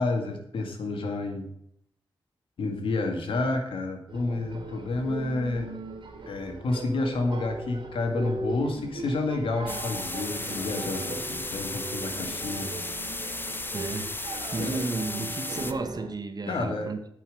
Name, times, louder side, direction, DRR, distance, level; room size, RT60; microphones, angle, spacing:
voice 1, 0.0-1.5 2.6-5.7 6.3-12.7 14.6-14.9 16.5-16.9, left 2 dB, 90° left, 3 dB, 2.1 m, -30 dB
sound 1, 4.1-16.1, right 2 dB, 75° right, 2.9 m, -39 dB
sound 2, 9.7-15.7, left 2 dB, 25° left, 0.9 m, -35 dB
voice 2, 13.7-17.1, right 3 dB, 50° right, 8 dB, 1.5 m, -33 dB
9.2 x 5.7 x 7.7 m, 0.73 s
cardioid pair, 70°, 9 cm